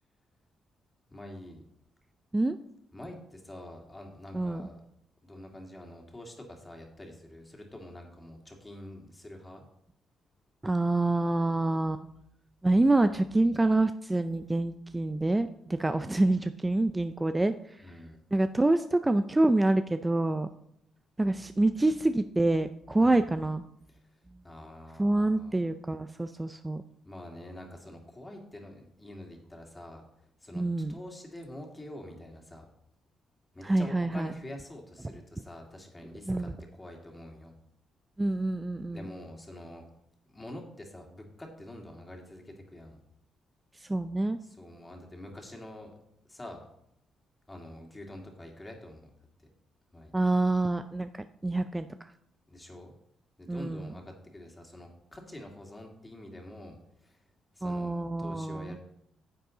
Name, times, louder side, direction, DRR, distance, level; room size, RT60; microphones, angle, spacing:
voice 1, 1.1-1.6 2.9-4.8 5.2-9.6 17.8-18.2 23.0-23.2 23.9-24.2 24.4-25.7 27.0-30.0 30.4-30.6 30.9-32.7 33.5-37.5 38.9-39.8 40.3-43.0 44.4-46.0 46.2-46.6 47.5-49.1 49.4-49.5 49.9-50.1 52.5-52.9 53.4-57.2 57.5-58.8, left 1 dB, 15° left, 1 dB, 2.3 m, -46 dB
voice 2, 10.6-12.1 12.6-17.8 18.3-20.5 21.2-23.6 25.0-26.8 30.5-30.9 33.6-34.3 36.3-36.5 38.2-39.1 43.8-44.4 50.1-52.1 53.5-53.9 57.6-58.8, right 2 dB, 15° right, 10 dB, 0.4 m, -27 dB
10.0 x 7.6 x 3.8 m, 0.76 s
cardioid pair, 90°, 0 cm